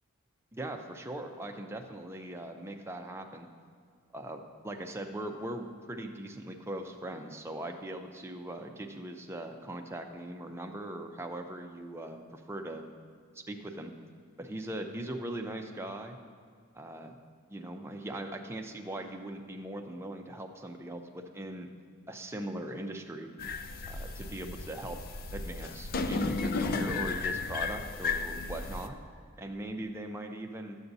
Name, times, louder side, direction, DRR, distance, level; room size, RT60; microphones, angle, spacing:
voice 1, 0.5-3.5 4.1-12.8 13.3-13.9 14.4-16.2 16.7-17.2 17.5-21.7 22.1-23.3 23.8-25.0 25.3-29.0 29.4-30.8, right 1 dB, 10° right, 3 dB, 0.5 m, -40 dB
sound 1, 23.4-28.9, left 4 dB, 45° left, 0.4 m, -34 dB
11.0 x 7.9 x 2.7 m, 2.1 s
head